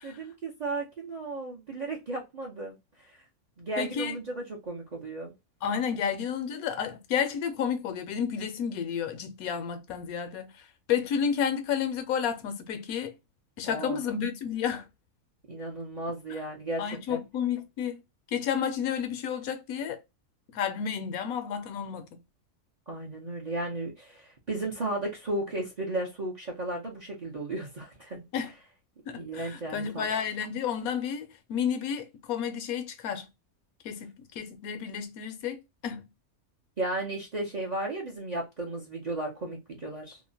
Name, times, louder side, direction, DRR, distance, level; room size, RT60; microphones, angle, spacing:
voice 1, 0.0-2.8 3.0-3.2 3.6-5.3 13.6-14.1 15.5-17.2 22.9-28.2 29.1-30.1 36.8-40.2, right 2 dB, 45° right, 0.5 m, -34 dB
voice 2, 3.8-4.2 5.6-10.5 10.9-13.1 13.6-14.8 16.8-18.0 18.3-20.0 20.5-22.1 28.3-28.5 29.1-33.3 33.8-36.0, left 7 dB, 75° left, 1.0 m, -31 dB
2.8 x 2.1 x 2.6 m
omnidirectional pair, 1.6 m